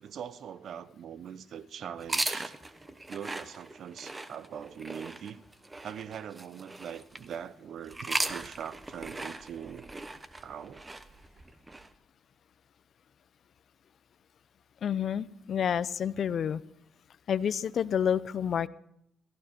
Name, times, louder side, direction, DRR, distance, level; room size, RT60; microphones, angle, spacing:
voice 1, 0.0-2.5 3.1-5.4 5.8-9.9 10.4-10.8, right 8 dB, 65° right, 0.7 m, -42 dB
sound 1, 2.0-7.4 7.9-11.9, right 2 dB, 20° right, 1.0 m, -38 dB
voice 2, 14.8-16.6 17.3-18.7, left 8 dB, 60° left, 0.5 m, -29 dB
17.0 x 14.5 x 4.3 m
cardioid pair, 90°, 0 cm